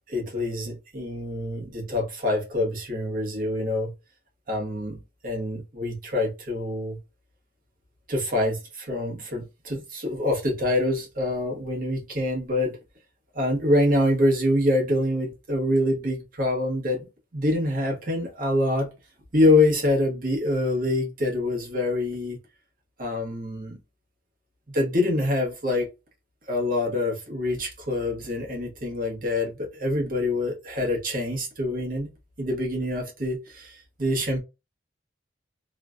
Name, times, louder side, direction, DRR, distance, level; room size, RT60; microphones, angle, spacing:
voice 1, 0.1-3.9 4.5-5.0 5.2-7.0 8.1-12.8 13.3-17.1 17.3-18.9 19.3-22.4 23.0-23.8 24.7-25.9 26.5-32.1 32.4-34.4, left 1 dB, 45° right, 1.0 m, -25 dB
3.1 x 2.1 x 2.4 m
head